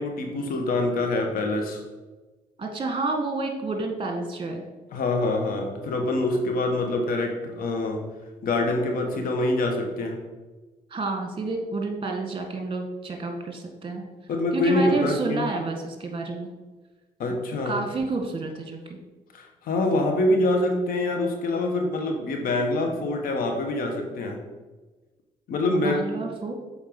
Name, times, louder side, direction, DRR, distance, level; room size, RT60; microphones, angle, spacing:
voice 1, 0.0-1.8 4.9-8.0 8.4-10.1 14.3-15.5 17.2-17.8 19.3-24.4 25.5-26.0, left 2 dB, 75° left, 3 dB, 1.3 m, -25 dB
voice 2, 2.6-4.7 10.9-14.0 14.5-16.5 17.6-19.0 25.7-26.5, right 3 dB, 35° right, 3 dB, 1.6 m, -30 dB
7.1 x 4.5 x 5.3 m, 1.2 s
cardioid pair, 70°, 15 cm